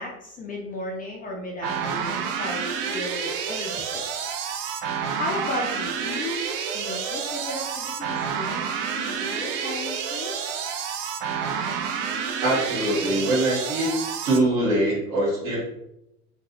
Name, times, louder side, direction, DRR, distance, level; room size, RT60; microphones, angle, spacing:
voice 1, 0.0-4.0 5.2-6.4 6.7-8.6 9.0-10.3, left 2 dB, 20° left, -1 dB, 0.5 m, -34 dB
sound 1, 1.6-14.4, right 7 dB, 40° right, 0.4 m, -29 dB
voice 2, 12.4-13.9 14.2-15.7, right 1 dB, 65° right, -4 dB, 1.5 m, -23 dB
3.0 x 2.6 x 2.7 m, 0.85 s
figure-of-eight pair, 70°, 44 cm